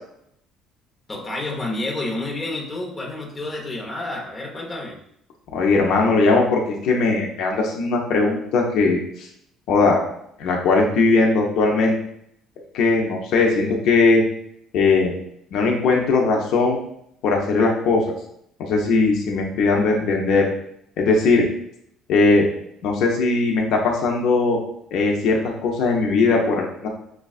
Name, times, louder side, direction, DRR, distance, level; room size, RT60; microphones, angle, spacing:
voice 1, 1.1-5.0, left 2 dB, 15° left, -2 dB, 0.7 m, -29 dB
voice 2, 5.5-9.3 9.7-10.0 10.4-12.0 12.7-14.2 14.7-15.1 15.5-16.8 17.2-18.1 18.6-20.5 21.0-21.5 22.1-22.5 22.8-24.6 24.9-26.9, left 3 dB, 60° left, 0 dB, 0.6 m, -19 dB
6.0 x 2.2 x 2.4 m, 0.73 s
cardioid pair, 165°, 0 cm